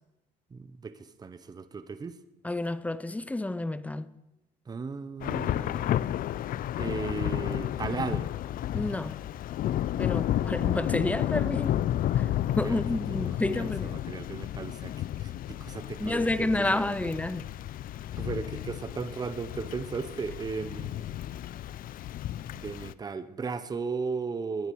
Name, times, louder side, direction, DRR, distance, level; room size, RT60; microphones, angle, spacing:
voice 1, 0.5-2.1 4.7-5.9 6.8-8.3 12.6-12.8 13.1-16.9 18.1-21.2 22.5-24.7, right 4 dB, 25° right, 0.8 m, -36 dB
voice 2, 2.4-4.1 8.7-9.2 10.0-11.8 12.2-12.3 12.6-14.0 16.0-17.5, left 2 dB, 10° left, 0.6 m, -30 dB
Thunder / Rain, 5.2-22.9, left 12 dB, 55° left, 0.5 m, -32 dB
19.0 x 10.0 x 4.7 m
cardioid pair, 110°, 17 cm